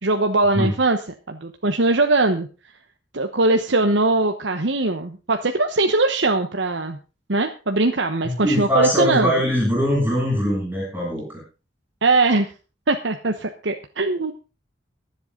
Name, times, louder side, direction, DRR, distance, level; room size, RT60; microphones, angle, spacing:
voice 1, 0.0-1.0 1.3-2.5 3.1-7.0 7.3-9.3 12.0-12.5 12.9-14.3, right 2 dB, 75° right, 5 dB, 1.1 m, -20 dB
voice 2, 8.2-11.4, equal, 10° right, -3 dB, 7.0 m, -22 dB
23.5 x 8.0 x 3.9 m, 0.33 s
head